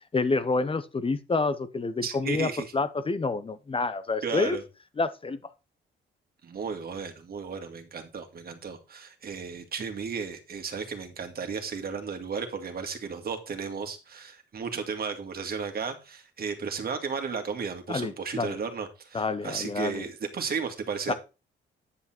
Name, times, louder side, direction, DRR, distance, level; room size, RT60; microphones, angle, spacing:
voice 1, 0.1-2.5 2.7-4.6 5.0-5.4 17.9-18.5 19.1-20.0 21.1-21.2, left 3 dB, 25° left, 12 dB, 0.8 m, -28 dB
voice 2, 2.0-2.7 4.2-4.6 6.4-21.1, right 5 dB, 50° right, 6 dB, 2.1 m, -34 dB
9.7 x 5.7 x 4.4 m, 0.30 s
cardioid pair, 90°, 20 cm